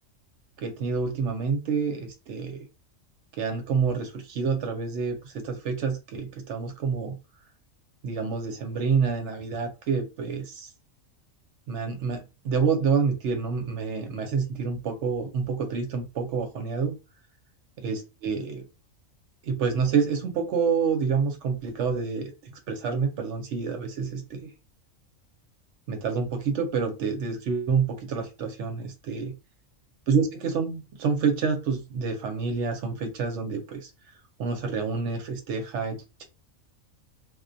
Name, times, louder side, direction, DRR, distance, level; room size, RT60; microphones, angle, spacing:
voice 1, 0.6-2.6 3.4-7.2 8.0-10.7 11.7-17.0 17.8-18.6 19.5-24.5 25.9-29.3 30.1-33.9 34.4-36.2, right 5 dB, 65° right, 5 dB, 0.8 m, -28 dB
2.2 x 2.2 x 2.5 m, 0.27 s
omnidirectional pair, 1.4 m